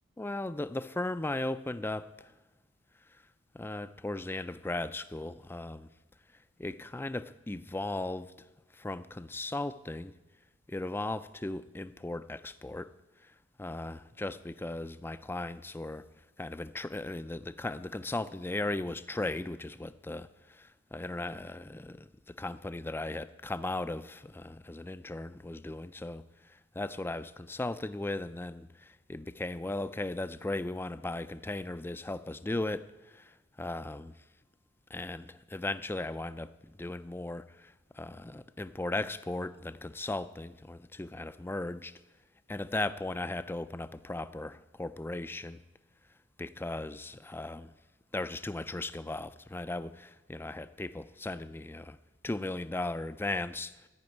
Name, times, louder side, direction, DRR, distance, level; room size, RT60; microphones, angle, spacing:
voice 1, 0.2-2.1 3.5-5.9 6.6-8.3 8.8-10.1 10.7-12.9 13.6-16.0 16.4-20.3 20.5-26.2 26.8-32.9 33.1-33.2 33.6-34.1 34.9-36.5 36.8-41.9 42.5-45.6 46.4-47.7 48.1-52.0 52.2-53.7, left 2 dB, 10° left, 0.4 m, -37 dB
14.0 x 5.3 x 9.2 m
head